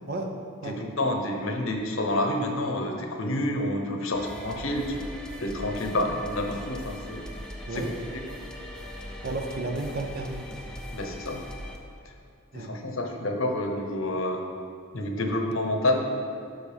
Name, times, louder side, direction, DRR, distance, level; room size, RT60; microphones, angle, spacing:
voice 1, 0.6-5.0 5.4-7.3 7.7-8.3 10.9-11.4 12.5-14.4 14.9-16.2, left 1 dB, 80° left, 3 dB, 1.0 m, -28 dB
sound 1, 4.1-11.8, equal, 5° left, 0.5 m, -40 dB
voice 2, 9.2-10.5 12.5-12.7, right 2 dB, 50° right, 3 dB, 0.8 m, -32 dB
12.0 x 5.3 x 3.5 m, 2.4 s
head